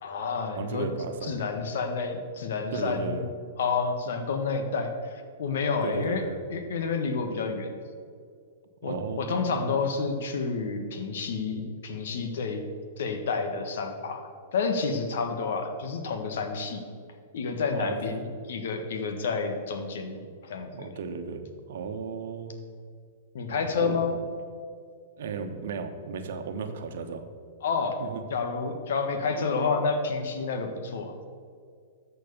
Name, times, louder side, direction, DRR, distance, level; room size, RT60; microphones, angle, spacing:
voice 1, 0.0-0.9 1.3-3.3 3.6-6.2 6.5-7.7 8.8-12.6 13.0-14.2 14.5-16.8 17.3-20.2 20.5-20.9 23.3-24.2 27.6-28.0 28.3-31.1, left 4 dB, 70° left, 6 dB, 1.4 m, -29 dB
voice 2, 0.5-1.4 2.7-3.3 5.8-6.4 8.8-9.6 17.7-18.2 20.2-20.3 20.7-22.6 23.5-24.0 25.2-27.2 28.0-28.2 29.3-29.7, right 5 dB, 65° right, 6 dB, 1.2 m, -35 dB
13.5 x 4.6 x 7.0 m, 2.2 s
hypercardioid pair, 115°, 0 cm